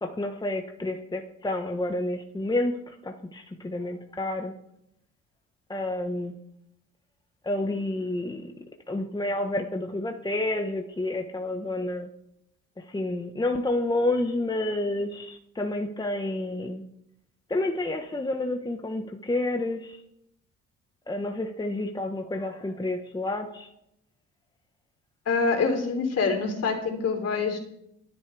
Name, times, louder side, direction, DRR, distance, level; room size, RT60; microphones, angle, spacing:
voice 1, 0.0-4.5 5.7-6.3 7.4-8.4 8.9-12.1 12.8-16.8 17.5-20.0 21.1-23.7, left 2 dB, 15° left, 4 dB, 1.2 m, -29 dB
voice 2, 25.2-27.6, left 4 dB, 55° left, 3 dB, 3.4 m, -25 dB
25.5 x 9.5 x 3.4 m, 0.78 s
cardioid pair, 90°, 30 cm